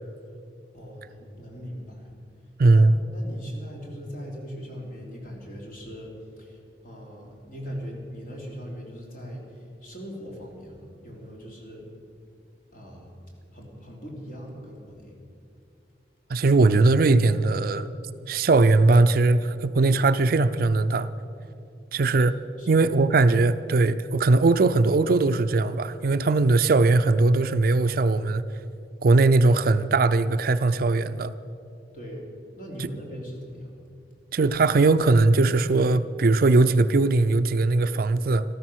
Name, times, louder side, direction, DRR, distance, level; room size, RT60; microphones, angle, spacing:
voice 1, 0.7-2.1 2.7-11.9 12.7-13.2 13.5-15.2 22.6-22.8 31.9-32.3 32.6-33.7 34.1-34.4, equal, 50° left, -2 dB, 3.3 m, -40 dB
voice 2, 2.6-2.9 16.3-17.9 18.3-21.1 21.9-22.3 22.7-28.4 29.0-31.3 34.3-38.4, right 3 dB, 55° right, 12 dB, 0.5 m, -20 dB
14.0 x 13.5 x 6.2 m, 2.5 s
head